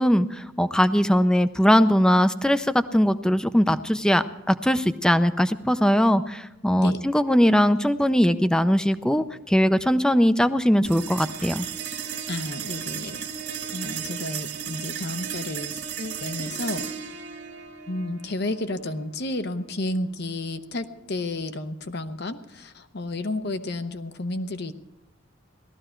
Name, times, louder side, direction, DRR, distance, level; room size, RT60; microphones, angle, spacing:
voice 1, 0.0-11.7, equal, 5° left, 11 dB, 0.5 m, -20 dB
sound 1, 10.8-21.5, right 7 dB, 60° right, 2.0 m, -35 dB
voice 2, 12.3-13.2 13.7-16.8 17.9-24.7, left 2 dB, 55° left, 10 dB, 0.8 m, -31 dB
17.5 x 13.5 x 4.5 m, 0.93 s
head